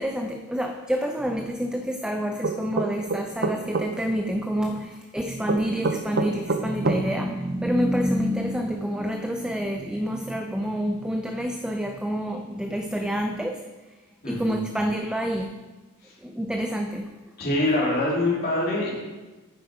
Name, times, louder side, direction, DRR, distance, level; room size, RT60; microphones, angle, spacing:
voice 1, 0.0-13.7 14.2-15.7 16.2-17.1, equal, 5° right, 5 dB, 0.4 m, -28 dB
sound 1, 2.4-3.9 5.5-7.0, right 3 dB, 50° right, 0.6 m, -25 dB
voice 2, 14.2-14.6 16.0-16.1 17.4-18.9, left 2 dB, 45° left, -5 dB, 2.9 m, -24 dB
9.4 x 7.4 x 5.0 m, 1.2 s
head